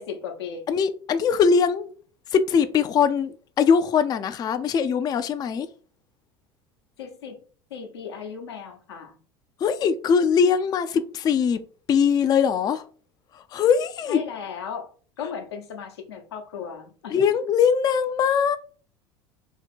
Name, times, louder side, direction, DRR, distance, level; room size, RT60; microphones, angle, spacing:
voice 1, 0.0-0.6 7.0-7.4 7.7-9.2 14.1-14.9 15.2-17.2, left 7 dB, 90° left, 0.9 m, -36 dB
voice 2, 0.7-1.9 2.3-5.7 9.6-11.6 11.9-12.9 13.3-14.2 17.1-18.6, left 6 dB, 30° left, 0.3 m, -21 dB
2.9 x 2.8 x 4.2 m
hypercardioid pair, 85°, 13 cm